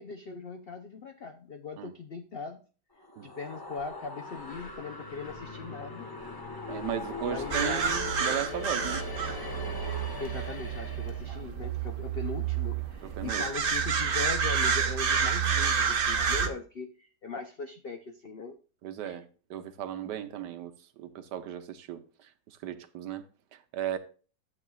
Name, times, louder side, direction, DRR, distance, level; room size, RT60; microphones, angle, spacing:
voice 1, 0.0-2.6 3.2-6.1 7.2-7.9 10.2-18.6 19.0-19.2, left 4 dB, 70° left, 0.5 m, -40 dB
sound 1, 3.0-11.3, left 3 dB, 20° left, 0.6 m, -40 dB
voice 2, 6.7-9.1 13.0-13.5 18.8-23.3 23.5-24.0, right 11 dB, 80° right, 1.3 m, -36 dB
sound 2, 7.5-16.5, right 6 dB, 50° right, 0.7 m, -29 dB
12.0 x 8.2 x 2.3 m
omnidirectional pair, 1.9 m